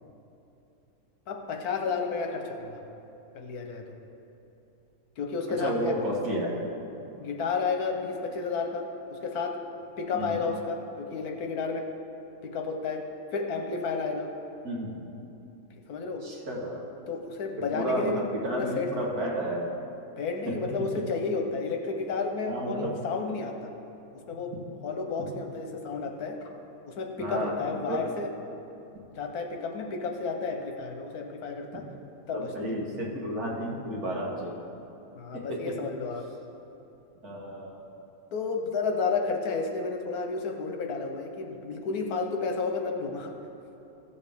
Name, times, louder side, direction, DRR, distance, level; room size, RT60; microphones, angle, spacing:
voice 1, 1.3-2.8 3.3-3.8 5.2-6.0 7.2-9.6 10.0-11.9 12.4-13.0 13.3-14.3 15.9-16.3 17.1-19.1 20.2-23.7 24.3-24.5 24.8-26.5 26.9-28.3 29.1-31.9 32.3-32.7 35.1-36.3 38.3-43.3, left 4 dB, 85° left, 3 dB, 1.4 m, -31 dB
voice 2, 5.6-6.7 10.1-10.4 14.6-15.0 16.2-16.8 17.7-19.7 20.9-21.0 22.5-22.9 27.2-28.0 31.7-31.8 32.3-34.5 35.3-35.6 37.2-37.8, right 1 dB, 75° right, -3 dB, 2.1 m, -32 dB
15.0 x 7.1 x 3.6 m, 2.9 s
omnidirectional pair, 1.6 m